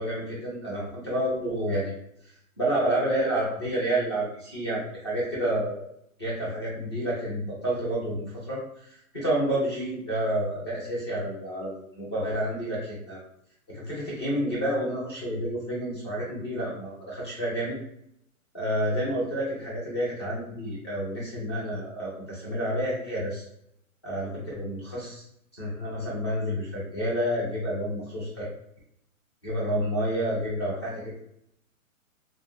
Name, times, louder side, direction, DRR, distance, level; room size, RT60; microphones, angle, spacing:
voice 1, 0.0-1.9 2.2-5.8 6.2-13.2 13.7-17.8 18.5-23.4 24.0-25.2 25.6-28.5 29.4-31.2, right 1 dB, 20° left, -6 dB, 0.6 m, -29 dB
3.5 x 2.2 x 2.5 m, 0.75 s
hypercardioid pair, 180°, 42 cm